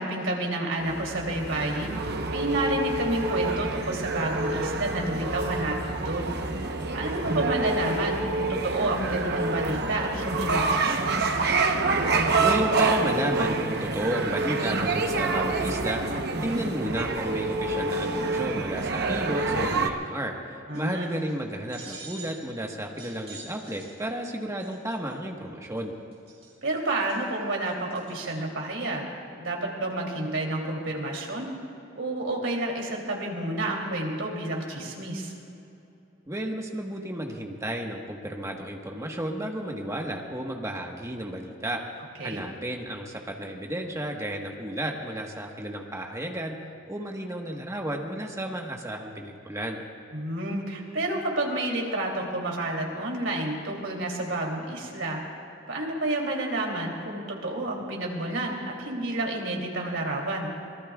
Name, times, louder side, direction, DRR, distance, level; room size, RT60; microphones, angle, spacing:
voice 1, 0.0-2.0 2.3-6.3 6.6-6.7 6.9-11.4 16.3-16.6 20.7-21.2 26.6-29.0 29.4-31.5 32.0-35.3 42.2-42.4 50.1-55.2 55.7-60.5, right 2 dB, 70° right, 0 dB, 3.1 m, -30 dB
sound 1, 0.8-19.9, right 3 dB, 55° right, 1.0 m, -27 dB
voice 2, 12.4-25.9 36.3-41.8 42.2-46.6 46.9-49.8, right 1 dB, 15° right, 1 dB, 1.4 m, -32 dB
sound 2, 20.7-21.3 21.7-22.5 22.9-24.2 24.6-25.1 25.8-25.9 26.1-28.4, right 4 dB, 35° right, 3.6 m, -47 dB
24.5 x 20.0 x 2.4 m, 2.8 s
head